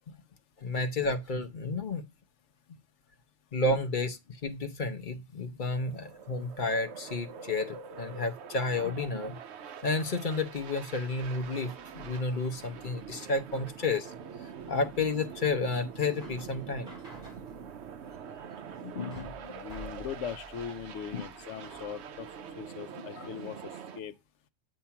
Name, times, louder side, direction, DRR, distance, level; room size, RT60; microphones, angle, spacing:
voice 1, 0.6-2.0 3.5-9.4 9.8-14.1 14.4-16.9 18.8-19.5 21.1-21.2 23.1-23.3, left 3 dB, 45° left, 0.8 m, -31 dB
sound 1, 5.6-24.0, right 7 dB, 65° right, 0.8 m, -45 dB
sound 2, 11.8-22.7, left 1 dB, 35° right, 4.3 m, -52 dB
voice 2, 19.6-22.3 22.6-24.1, left 7 dB, 65° left, 1.0 m, -40 dB
8.6 x 2.9 x 5.6 m
omnidirectional pair, 1.4 m